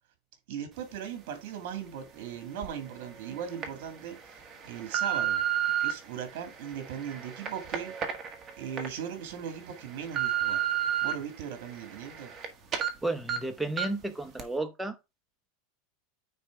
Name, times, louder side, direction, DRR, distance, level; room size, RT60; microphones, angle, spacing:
voice 1, 0.5-5.4 5.8-7.9 8.6-10.6 11.0-12.3, right 8 dB, 60° right, 2.2 m, -38 dB
sound 1, 2.6-2.7 3.3-3.7 4.3-5.9 6.6-8.9 9.3-9.4 9.8-11.1 11.6-12.5 12.7-12.9 13.3-13.4 13.8-14.0 14.4-14.5, right 10 dB, 25° right, 1.4 m, -31 dB
voice 2, 13.0-15.0, right 2 dB, 5° right, 0.8 m, -32 dB
9.2 x 3.2 x 4.8 m
supercardioid pair, 155°, 0 cm